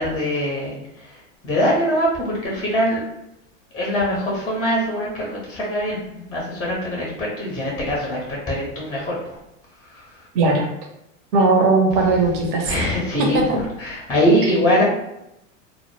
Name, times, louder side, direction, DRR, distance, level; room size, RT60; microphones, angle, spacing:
voice 1, 0.0-3.0 3.7-9.4 9.8-10.3 12.6-14.8, equal, 10° left, -4 dB, 0.5 m, -23 dB
voice 2, 10.3-10.7 11.3-12.7 13.5-13.6, right 3 dB, 50° right, 1 dB, 0.7 m, -17 dB
2.0 x 2.0 x 3.1 m, 0.86 s
hypercardioid pair, 105°, 39 cm